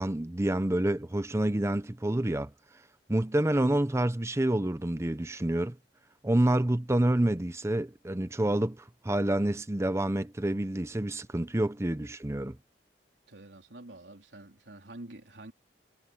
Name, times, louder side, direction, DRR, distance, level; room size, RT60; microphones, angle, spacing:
voice 1, 0.0-2.5 3.1-5.8 6.2-12.6, right 1 dB, 15° right, 0.7 m, -28 dB
voice 2, 13.3-15.5, right 1 dB, 90° right, 3.4 m, -48 dB
head